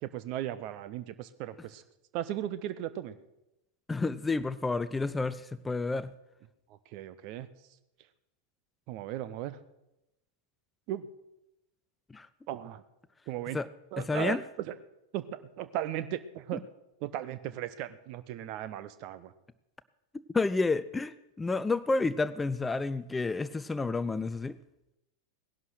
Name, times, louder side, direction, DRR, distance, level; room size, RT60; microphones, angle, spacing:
voice 1, 0.0-1.8 2.1-3.2 6.7-7.5 8.9-9.6 10.9-11.1 12.5-12.8 13.3-13.6 13.9-14.8 15.1-16.6 17.0-19.3, right 12 dB, 45° right, 14 dB, 1.1 m, -37 dB
voice 2, 3.9-6.1 12.1-12.3 13.5-13.7 14.0-14.4 20.3-24.6, left 3 dB, 10° left, 15 dB, 0.5 m, -30 dB
18.0 x 11.0 x 6.4 m, 0.93 s
figure-of-eight pair, 90°, 0 cm